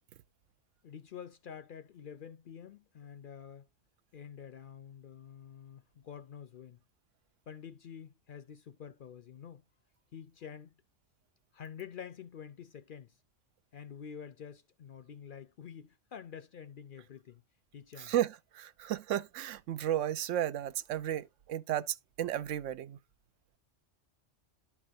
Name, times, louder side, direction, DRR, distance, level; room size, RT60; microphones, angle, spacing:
voice 1, 0.8-3.7 4.1-6.8 7.5-9.6 10.1-10.8 11.5-13.2 13.7-17.4 17.7-18.1, left 8 dB, 60° left, 0.6 m, -48 dB
voice 2, 18.0-23.0, right 11 dB, 85° right, 1.0 m, -33 dB
12.0 x 4.7 x 2.6 m
omnidirectional pair, 1.2 m